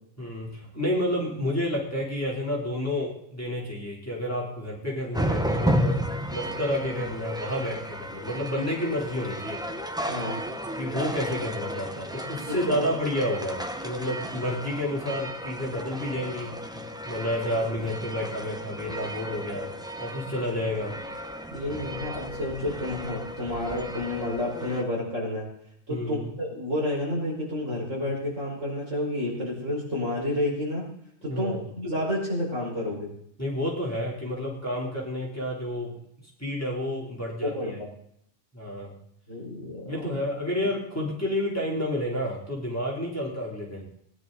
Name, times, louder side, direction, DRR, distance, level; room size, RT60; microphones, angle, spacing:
voice 1, 0.2-6.0 6.3-9.6 10.7-20.9 25.9-26.3 31.2-31.6 33.4-35.9 36.4-37.8 38.5-38.9 39.9-43.9, left 1 dB, 10° left, -4 dB, 3.5 m, -30 dB
sound 1, 5.1-24.8, equal, 5° right, 0.6 m, -33 dB
voice 2, 10.1-10.4 12.5-12.8 21.5-25.5 25.9-30.8 31.2-33.1 37.4-37.7 39.3-40.2, left 1 dB, 65° right, -4 dB, 5.6 m, -30 dB
20.0 x 10.5 x 4.0 m, 0.72 s
omnidirectional pair, 1.4 m